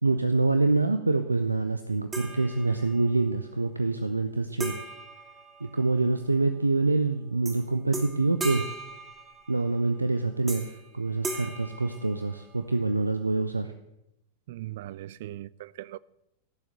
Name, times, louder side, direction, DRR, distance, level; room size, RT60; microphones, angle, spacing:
voice 1, 0.0-4.8 5.6-8.7 9.5-13.7, right 3 dB, 80° right, 0.7 m, -26 dB
sound 1, 2.1-3.1 4.6-6.2 7.4-7.6 7.9-9.8 10.5-10.9 11.2-12.7, right 2 dB, 15° right, 2.8 m, -38 dB
voice 2, 14.5-16.0, right 14 dB, 55° right, 0.4 m, -39 dB
17.0 x 7.4 x 7.7 m
figure-of-eight pair, 90°, 0 cm